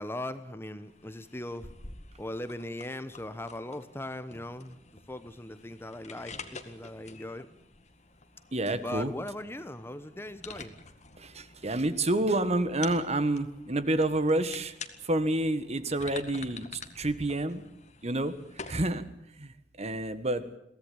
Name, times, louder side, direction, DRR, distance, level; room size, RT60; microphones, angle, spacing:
voice 1, 0.0-1.7 2.2-4.8 5.1-7.5 8.8-10.8, left 1 dB, 15° left, 12 dB, 1.0 m, -39 dB
sound 1, 0.8-18.9, left 4 dB, 40° left, 2.0 m, -48 dB
voice 2, 8.5-9.1 11.2-14.7 15.0-17.6 18.0-18.3 18.7-19.0 19.4-19.5 19.8-20.4, right 1 dB, 40° right, 12 dB, 1.6 m, -28 dB
23.0 x 17.0 x 8.8 m, 0.78 s
head